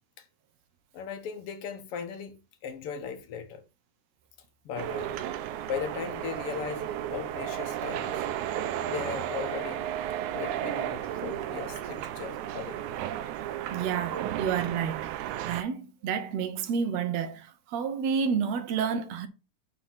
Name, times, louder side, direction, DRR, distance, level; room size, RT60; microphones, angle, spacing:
voice 1, 0.9-2.4 2.6-3.6 4.7-5.3 5.7-8.3 8.9-9.8 10.3-12.8 14.1-14.2, left 7 dB, 60° left, 1.7 m, -37 dB
sound 1, 4.8-15.6, right 11 dB, 85° right, 2.0 m, -33 dB
voice 2, 13.7-15.2 15.5-19.3, right 7 dB, 70° right, 1.9 m, -30 dB
6.1 x 4.6 x 5.7 m
omnidirectional pair, 3.4 m